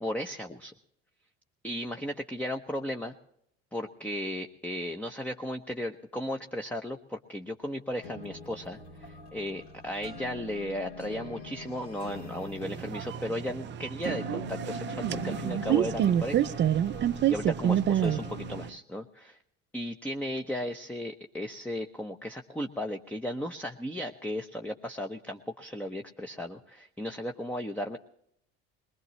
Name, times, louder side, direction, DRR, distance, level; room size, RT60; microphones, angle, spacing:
voice 1, 0.0-0.7 1.6-3.1 3.7-16.5 17.3-19.4 19.7-28.0, left 1 dB, 5° left, 4 dB, 0.8 m, -35 dB
sound 1, 7.9-18.7, left 2 dB, 85° left, 3.6 m, -43 dB
sound 2, 12.6-18.7, right 10 dB, 35° right, 0.6 m, -28 dB
20.5 x 20.0 x 3.2 m, 0.74 s
hypercardioid pair, 80°, 31 cm